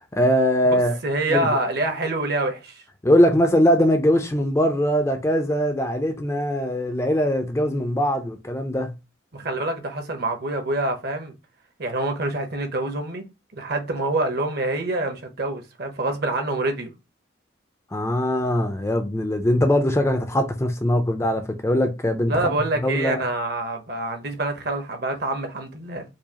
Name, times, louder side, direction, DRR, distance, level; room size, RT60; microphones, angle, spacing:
voice 1, 0.1-1.0 1.3-1.5 3.0-8.9 17.9-22.5 22.8-23.2, equal, 15° left, 0.4 m, -21 dB
voice 2, 0.7-2.8 9.3-11.3 11.8-13.2 13.5-16.9 22.3-26.0, right 2 dB, 50° right, 0.9 m, -26 dB
4.7 x 2.4 x 2.8 m
head